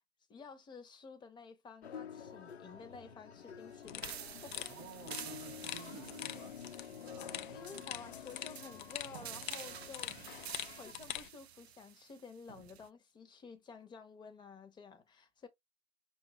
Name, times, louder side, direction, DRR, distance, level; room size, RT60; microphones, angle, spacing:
voice 1, 0.3-4.7 5.2-5.3 7.5-15.5, left 5 dB, 15° left, 0.9 m, -52 dB
sound 1, 1.8-10.9, left 8 dB, 75° left, 1.1 m, -50 dB
sound 2, 3.9-11.3, left 12 dB, 50° left, 0.6 m, -45 dB
sound 3, 4.0-12.9, right 10 dB, 70° right, 0.5 m, -50 dB
voice 2, 4.7-8.2, right 10 dB, 20° right, 0.4 m, -54 dB
5.7 x 2.6 x 3.2 m
figure-of-eight pair, 110°, 33 cm